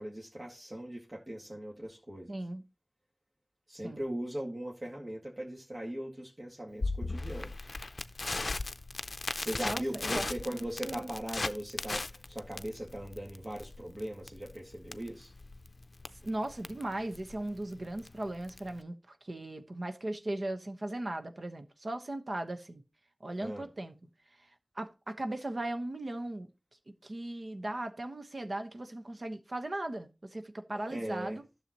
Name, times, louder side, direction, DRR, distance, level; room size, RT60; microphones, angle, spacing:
voice 1, 0.0-2.3 3.7-7.7 9.4-15.3 23.4-23.7 30.7-31.4, right 1 dB, 50° right, 2.0 m, -39 dB
voice 2, 2.3-2.6 3.8-4.0 9.6-10.2 10.5-11.1 16.1-22.8 23.2-24.0 24.3-26.5 27.0-31.4, right 1 dB, 65° right, 1.1 m, -38 dB
Crackle, 6.8-18.8, left 3 dB, 75° left, 0.4 m, -38 dB
12.5 x 6.8 x 3.0 m
wide cardioid pair, 55°, 0 cm